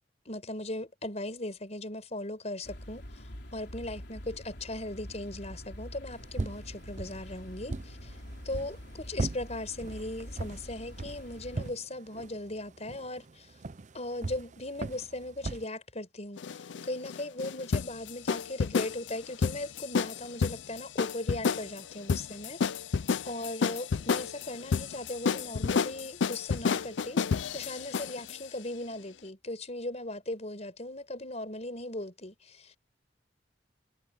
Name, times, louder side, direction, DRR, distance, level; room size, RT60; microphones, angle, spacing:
voice 1, 0.2-3.2 3.5-8.1 8.4-13.5 13.9-22.6 23.2-32.8, left 1 dB, 40° left, 4.9 m, -38 dB
sound 1, 2.6-11.7, equal, 65° left, 4.0 m, -46 dB
sound 2, 6.1-15.7, right 2 dB, 40° right, 0.6 m, -40 dB
sound 3, 16.4-28.4, left 5 dB, 80° left, 0.5 m, -30 dB
head